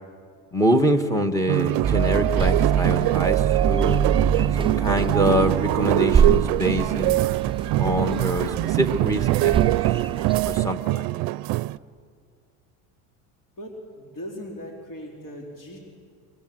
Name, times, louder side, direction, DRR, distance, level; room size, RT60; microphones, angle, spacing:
voice 1, 0.5-4.0 4.6-7.2 7.8-9.8 10.5-11.1, equal, 10° left, 6 dB, 1.6 m, -25 dB
sound 1, 1.5-11.8, right 18 dB, 60° right, 0.6 m, -23 dB
sound 2, 1.8-10.7, right 6 dB, 15° right, 0.6 m, -25 dB
voice 2, 13.6-15.8, equal, 50° left, 0 dB, 4.3 m, -38 dB
24.5 x 23.5 x 7.9 m, 2.2 s
supercardioid pair, 110°, 40 cm